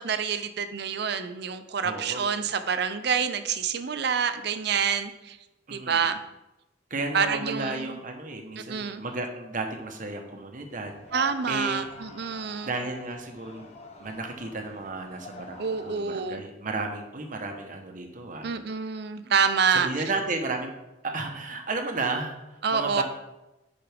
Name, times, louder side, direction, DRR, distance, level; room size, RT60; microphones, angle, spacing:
voice 1, 0.0-5.4 5.7-6.2 7.1-8.0 8.7-9.0 11.1-12.7 15.6-16.4 18.4-19.9 22.6-23.0, right 6 dB, 60° right, 10 dB, 0.6 m, -27 dB
voice 2, 1.8-2.2 5.7-6.1 6.9-11.0 11.5-11.9 12.6-13.7 14.0-18.5 19.7-20.7 21.0-23.0, right 3 dB, 45° right, 3 dB, 1.0 m, -33 dB
sound 1, 10.7-16.0, left 3 dB, 35° left, 0.9 m, -47 dB
10.5 x 5.1 x 3.5 m, 0.97 s
head